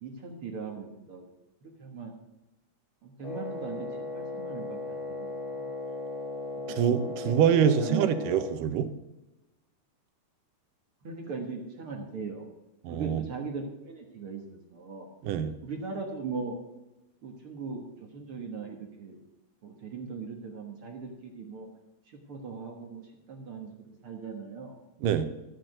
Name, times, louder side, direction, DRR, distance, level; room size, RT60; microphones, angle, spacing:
voice 1, 0.0-1.3 1.6-2.2 3.0-3.9 4.1-5.3 5.5-5.6 6.7-6.8 7.0-7.4 7.8-8.1 11.0-12.5 12.9-15.1 15.6-16.6 17.2-19.2 19.6-21.7 22.1-23.7 24.0-24.8, right 5 dB, 50° right, 3 dB, 1.9 m, -39 dB
Wind instrument woodwind instrument, 3.2-8.6, left 2 dB, 10° left, 1.5 m, -37 dB
voice 2, 6.7-8.9 12.8-13.2 15.2-15.5 25.0-25.2, right 8 dB, 80° right, 10 dB, 2.5 m, -25 dB
13.0 x 7.7 x 7.7 m, 0.97 s
omnidirectional pair, 3.9 m